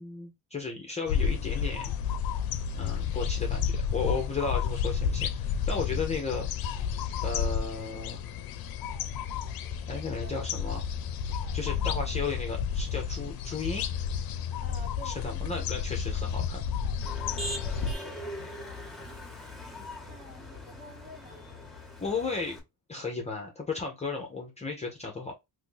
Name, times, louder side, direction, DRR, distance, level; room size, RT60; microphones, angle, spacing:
voice 1, 0.0-1.9 2.7-6.5 7.2-8.2 9.9-10.8 11.5-13.9 15.0-16.6 22.0-22.6 22.9-25.3, left 4 dB, 15° left, 0.6 m, -34 dB
sound 1, 1.1-17.9, left 7 dB, 65° left, 0.5 m, -31 dB
voice 2, 9.5-10.4 11.5-12.0 14.6-15.5 17.2-19.0 19.6-21.5, equal, 25° right, 1.2 m, -51 dB
Motor vehicle (road), 17.0-22.6, equal, ahead, 1.0 m, -41 dB
2.6 x 2.6 x 3.7 m
cardioid pair, 130°, 39 cm